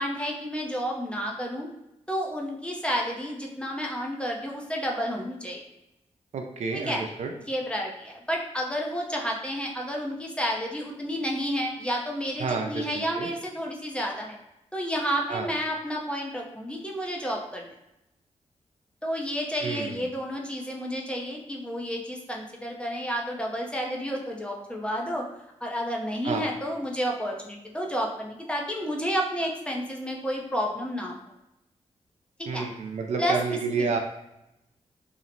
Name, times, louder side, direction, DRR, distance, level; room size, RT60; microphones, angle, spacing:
voice 1, 0.0-1.7 2.1-5.6 6.7-7.0 7.5-14.4 14.7-17.7 19.0-25.3 25.6-31.2 32.4-32.7 33.2-34.0, equal, 10° left, -1 dB, 0.5 m, -31 dB
voice 2, 6.3-7.3 12.4-13.3 15.3-15.5 19.6-20.0 26.2-26.5 32.5-34.0, right 4 dB, 65° right, 3 dB, 0.4 m, -30 dB
2.8 x 2.0 x 2.6 m, 0.88 s
cardioid pair, 65°, 12 cm